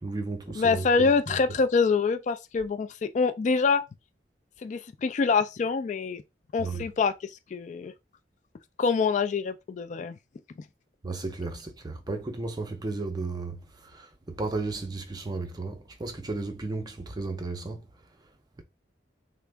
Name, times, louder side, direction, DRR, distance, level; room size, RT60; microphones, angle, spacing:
voice 1, 0.0-1.4 6.6-6.8 11.0-17.9 18.6-18.7, right 3 dB, 25° right, 0.4 m, -34 dB
voice 2, 0.6-3.8 4.6-6.2 6.5-7.9 8.8-10.2, left 4 dB, 45° left, 0.3 m, -25 dB
3.4 x 2.0 x 3.3 m
head